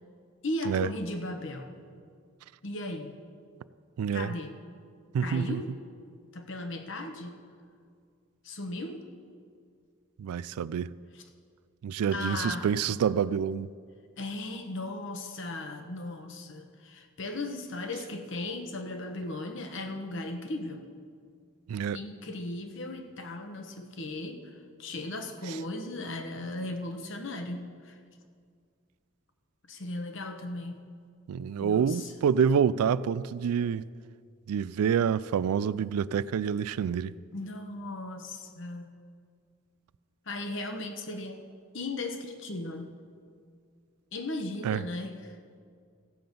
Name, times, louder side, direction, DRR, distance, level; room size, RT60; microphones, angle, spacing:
voice 1, 0.4-1.7 2.6-3.2 4.1-4.5 5.2-5.7 6.3-7.4 8.4-9.0 11.1-11.2 12.1-12.8 14.2-20.8 21.9-24.5 24.8-28.0 29.7-30.8 31.6-32.1 37.3-38.9 40.3-41.4 41.7-43.0 44.1-45.4, left 2 dB, 55° left, 1.0 m, -37 dB
voice 2, 4.0-4.3 5.1-5.6 10.2-10.9 11.8-13.7 21.7-22.0 31.3-33.9 34.5-37.1 44.6-44.8, right 7 dB, 85° right, 0.3 m, -27 dB
15.5 x 7.7 x 5.3 m
head